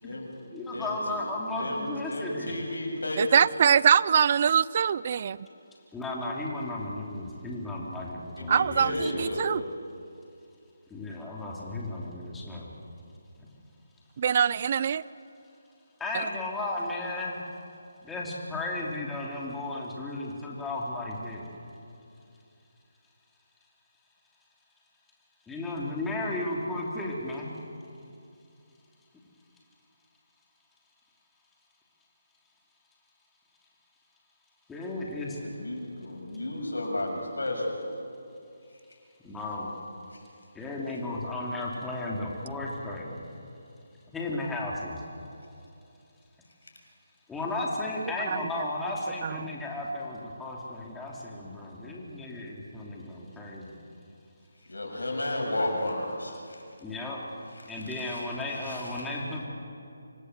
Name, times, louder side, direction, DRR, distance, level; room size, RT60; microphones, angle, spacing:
voice 1, 0.5-2.5 5.9-9.3 10.9-12.7 16.0-17.4 18.0-21.5 25.5-27.5 34.7-35.4 39.2-39.7 40.5-43.2 44.1-45.0 47.3-53.7 56.8-57.2 57.7-59.5, left 2 dB, 5° left, -3 dB, 3.1 m, -34 dB
voice 2, 1.6-3.2 8.4-9.5 35.1-37.7 40.1-40.2 54.7-56.6 58.0-58.2 58.7-58.9, left 1 dB, 90° left, 1 dB, 7.1 m, -33 dB
voice 3, 3.2-5.4 8.5-9.6 14.2-15.0 48.3-48.4 49.2-49.5, right 7 dB, 40° right, 20 dB, 0.5 m, -23 dB
26.0 x 18.0 x 8.2 m, 2.6 s
figure-of-eight pair, 160°, 0 cm